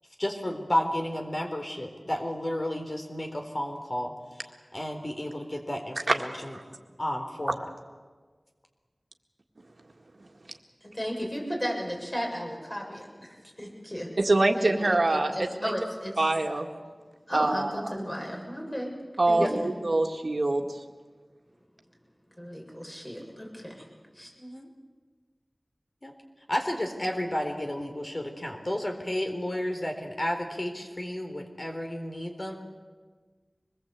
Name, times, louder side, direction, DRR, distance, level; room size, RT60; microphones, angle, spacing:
voice 1, 0.2-6.5 7.0-7.6 19.3-19.5 24.4-24.7 26.0-26.1 26.5-32.6, left 1 dB, 40° left, 4 dB, 3.9 m, -32 dB
voice 2, 10.8-14.1 14.5-16.3 17.3-19.0 19.3-19.7 22.4-23.9 24.1-24.3, equal, 20° left, 0 dB, 7.3 m, -35 dB
voice 3, 14.2-15.3 15.6-15.7 16.2-16.7 17.3-17.7 19.2-20.7, right 2 dB, 70° right, 3 dB, 1.9 m, -24 dB
25.5 x 21.0 x 8.3 m, 1.4 s
wide cardioid pair, 55°, 0 cm